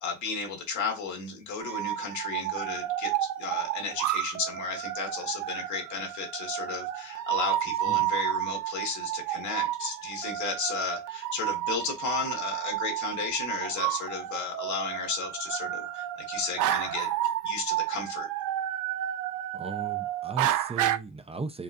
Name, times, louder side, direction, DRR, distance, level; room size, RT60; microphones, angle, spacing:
voice 1, 0.0-18.3, left 5 dB, 70° left, 1.8 m, -34 dB
sound 1, 1.6-21.0, right 13 dB, 85° right, 0.5 m, -31 dB
voice 2, 19.5-21.6, right 4 dB, 20° right, 0.5 m, -37 dB
5.0 x 2.3 x 2.6 m
cardioid pair, 90°, 30 cm